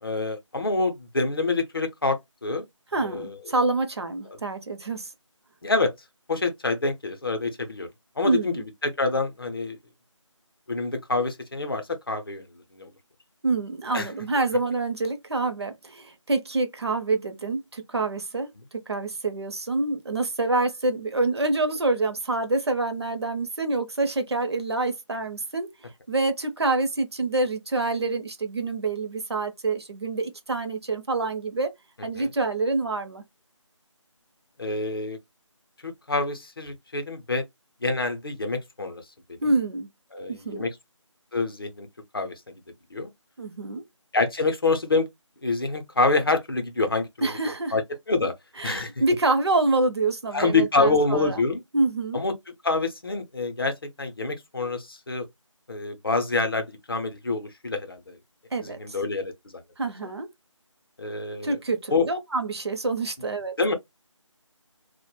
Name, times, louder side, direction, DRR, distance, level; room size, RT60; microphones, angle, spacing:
voice 1, 0.0-2.6 2.9-3.3 4.3-4.4 5.6-5.9 6.3-7.9 8.2-9.8 10.7-12.5 12.7-12.9 13.9-14.1 32.2-32.3 34.6-35.2 35.8-37.4 37.8-39.0 40.1-40.7 41.3-41.9 42.1-42.3 42.9-43.1 44.1-45.1 45.4-47.4 47.7-47.8 48.1-48.3 48.6-48.9 50.3-51.6 52.1-52.3 52.6-55.3 55.7-58.2 58.6-59.6 61.0-61.6 61.9-62.1 63.6-63.7, left 3 dB, 45° left, 0.6 m, -26 dB
voice 2, 2.9-5.1 8.2-8.6 13.4-25.7 26.1-31.7 32.0-33.2 39.4-39.9 40.3-40.6 43.4-43.8 47.2-47.7 48.6-51.4 51.7-52.2 58.5-59.0 59.8-60.3 61.4-63.5, right 3 dB, 55° right, 0.6 m, -26 dB
2.3 x 2.1 x 3.0 m
figure-of-eight pair, 170°, 16 cm